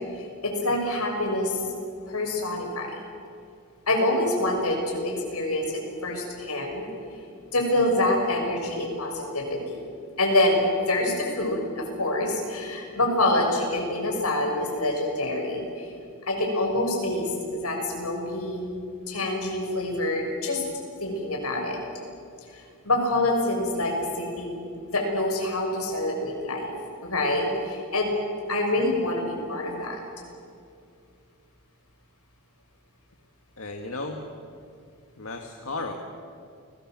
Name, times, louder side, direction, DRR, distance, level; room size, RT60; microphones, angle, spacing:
voice 1, 0.1-1.5 2.1-2.9 3.9-6.9 7.5-9.8 10.2-15.9 16.3-18.7 19.1-20.6 21.0-21.8 22.5-24.6 24.9-26.7 27.0-28.1 28.5-30.0, left 1 dB, 85° left, 2 dB, 6.1 m, -26 dB
voice 2, 33.6-34.2 35.2-35.9, left 3 dB, 65° left, 3 dB, 1.9 m, -34 dB
30.0 x 20.5 x 7.7 m, 2.4 s
head